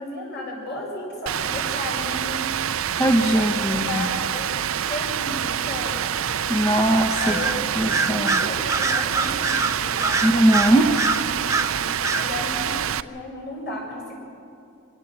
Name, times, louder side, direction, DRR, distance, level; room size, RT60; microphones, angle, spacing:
voice 1, 0.0-2.4 3.3-4.5 4.9-6.0 7.2-7.7 8.1-10.2 10.7-11.0 11.4-12.7 13.0-14.2, left 1 dB, 50° left, -2 dB, 6.8 m, -34 dB
Rain, 1.3-13.0, right 9 dB, 70° right, 0.5 m, -26 dB
voice 2, 3.0-4.1 6.5-7.4 7.7-8.4 10.2-10.9, right 1 dB, 15° left, 2 dB, 0.9 m, -20 dB
Bird vocalization bird call bird song, 7.2-7.6 7.9-11.7 12.0-12.3, right 3 dB, 15° right, 0.6 m, -24 dB
25.0 x 17.5 x 7.7 m, 2.6 s
head